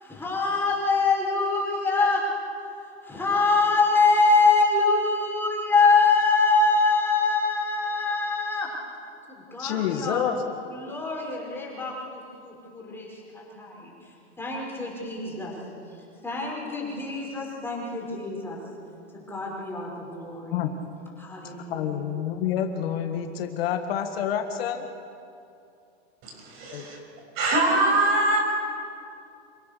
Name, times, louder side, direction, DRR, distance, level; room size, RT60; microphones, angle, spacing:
voice 1, 0.0-2.2 3.0-8.7 9.3-10.2 10.7-13.1 13.3-13.9 14.4-15.5 16.2-18.6 19.1-20.5 21.2-21.9, left 3 dB, 5° left, -4 dB, 5.8 m, -24 dB
voice 2, 9.6-10.4 20.5-20.7 21.7-24.9 26.7-26.9, left 9 dB, 55° left, 6 dB, 1.9 m, -28 dB
voice 3, 26.2-27.0 27.3-28.4, right 2 dB, 40° right, 0 dB, 6.9 m, -23 dB
28.0 x 16.5 x 6.9 m, 2.6 s
hypercardioid pair, 135°, 34 cm